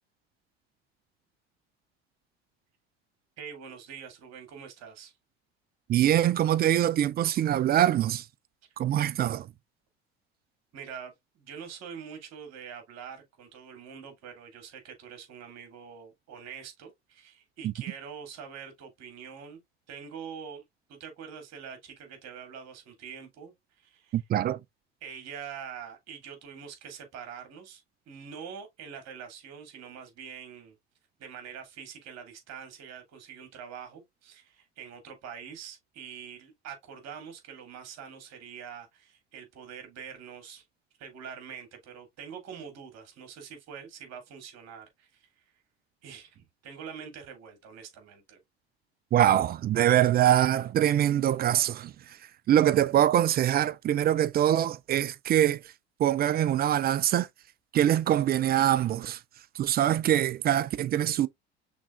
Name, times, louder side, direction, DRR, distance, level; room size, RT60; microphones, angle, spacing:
voice 1, 3.4-5.1 10.7-19.6 19.9-20.6 20.9-24.2 25.0-30.8 31.2-40.6 41.0-45.3 46.0-48.4, right 7 dB, 50° right, 2.3 m, -44 dB
voice 2, 5.9-8.2 8.8-9.5 17.6-17.7 24.1-24.6 49.1-51.9 52.5-55.6 56.0-57.3 57.7-59.2 59.6-61.3, right 11 dB, 30° right, 0.4 m, -24 dB
6.0 x 3.6 x 2.4 m
hypercardioid pair, 70°, 33 cm